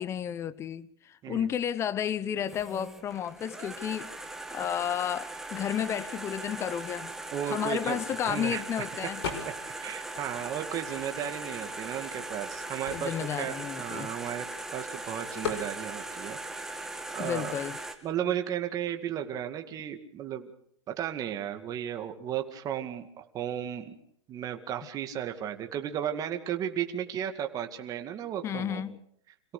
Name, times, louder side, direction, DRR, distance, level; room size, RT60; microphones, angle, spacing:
voice 1, 0.0-4.1 4.5-7.1 7.5-9.2 12.9-14.1 17.2-17.8 28.4-29.0, left 9 dB, 20° left, 0.8 m, -32 dB
sound 1, 2.5-17.9, right 2 dB, 5° right, 1.9 m, -39 dB
voice 2, 7.3-8.9 9.8-14.5 14.7-16.4 17.1-17.6 18.0-20.5 20.9-24.0 24.3-28.8, right 10 dB, 25° right, 2.2 m, -34 dB
sound 2, 9.2-9.8 10.2-11.4 12.0-12.1 12.3-14.6 15.4-15.7, left 6 dB, 65° left, 5.7 m, -38 dB
27.0 x 17.0 x 6.7 m
hypercardioid pair, 145°, 15 cm